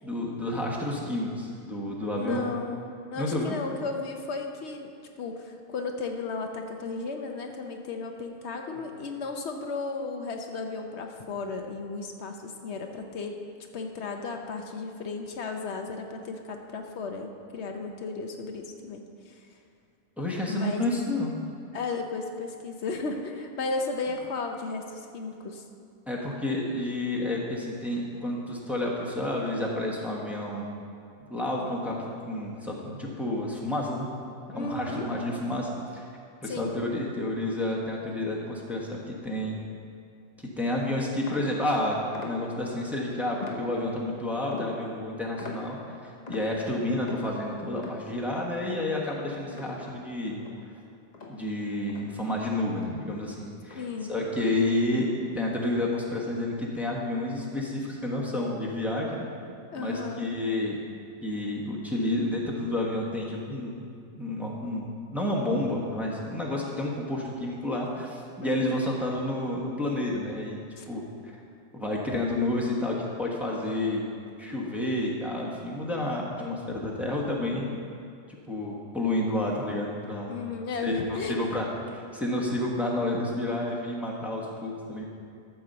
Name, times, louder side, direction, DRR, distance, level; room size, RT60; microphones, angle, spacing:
voice 1, 0.0-2.4 3.2-3.6 20.2-21.4 26.1-30.7 31.2-34.1 34.5-36.0 36.4-39.6 40.4-45.8 46.3-50.4 51.3-53.8 54.1-59.3 59.8-60.8 61.2-63.9 64.2-64.8 65.1-71.3 71.7-74.0 74.4-77.7 78.5-80.3 80.8-85.0, left 1 dB, ahead, -4 dB, 1.3 m, -30 dB
voice 2, 2.1-4.9 5.2-13.4 13.7-19.4 20.3-20.8 21.7-24.8 25.1-25.6 34.5-35.1 36.4-36.8 53.7-54.1 59.7-60.3 68.5-68.8 70.8-70.9 76.4-76.7 80.3-81.4, left 4 dB, 75° left, 4 dB, 1.1 m, -34 dB
sound 1, 41.3-42.8 43.4-44.1 44.5-50.1 50.4-52.4 52.8-53.1 53.6-54.1, left 3 dB, 40° left, 1.0 m, -43 dB
13.0 x 4.6 x 6.8 m, 2.4 s
omnidirectional pair, 1.1 m